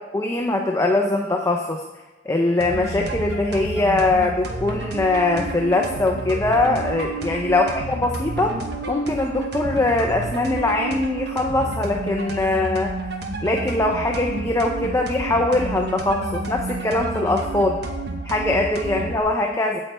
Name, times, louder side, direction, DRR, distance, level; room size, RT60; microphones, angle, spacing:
voice 1, 0.1-1.8 2.3-8.5 8.9-12.9 13.4-17.8 18.2-19.8, left 2 dB, 15° left, 2 dB, 0.5 m, -22 dB
sound 1, 2.6-19.2, right 2 dB, 65° right, 0.9 m, -30 dB
8.5 x 8.0 x 3.4 m, 1.2 s
head